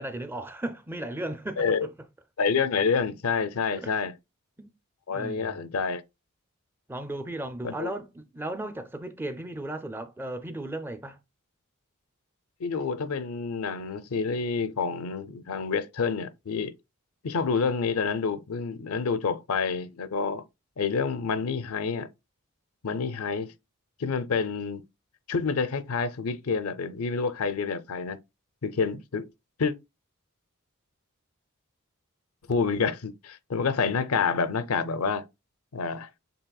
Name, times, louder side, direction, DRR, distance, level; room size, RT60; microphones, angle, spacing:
voice 1, 0.0-1.9 3.8-4.0 4.6-4.7 5.1-5.7 6.9-11.2, right 1 dB, 10° right, 0.4 m, -36 dB
voice 2, 2.4-4.1 5.1-6.0 7.6-7.9 12.6-16.7 17.2-20.4 20.8-22.1 22.8-23.5 24.0-24.8 25.3-28.2 28.6-29.3 29.6-29.7 32.5-35.3 35.7-36.1, left 5 dB, 80° left, 0.6 m, -28 dB
6.9 x 3.2 x 2.3 m
head